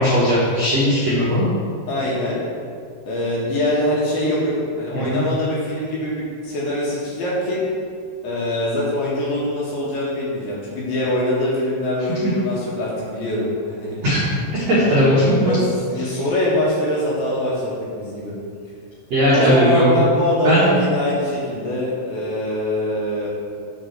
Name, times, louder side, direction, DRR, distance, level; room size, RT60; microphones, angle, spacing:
voice 1, 0.0-1.5 4.9-5.2 14.0-15.5 19.1-19.8 20.4-20.7, equal, 80° right, -8 dB, 1.5 m, -18 dB
voice 2, 1.9-2.4 3.0-7.6 8.2-14.0 14.7-15.6 15.9-18.3 19.3-23.3, left 1 dB, 60° left, -6 dB, 3.0 m, -23 dB
6.9 x 5.2 x 6.8 m, 2.2 s
omnidirectional pair, 5.5 m